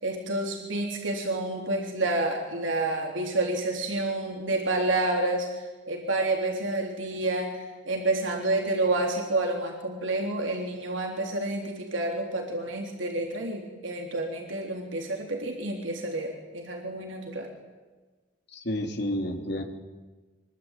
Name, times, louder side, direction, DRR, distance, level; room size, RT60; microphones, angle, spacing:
voice 1, 0.0-17.5, right 2 dB, 80° right, 1 dB, 3.7 m, -29 dB
voice 2, 18.5-19.6, left 1 dB, 60° left, 3 dB, 3.6 m, -30 dB
25.0 x 23.5 x 9.2 m, 1.3 s
head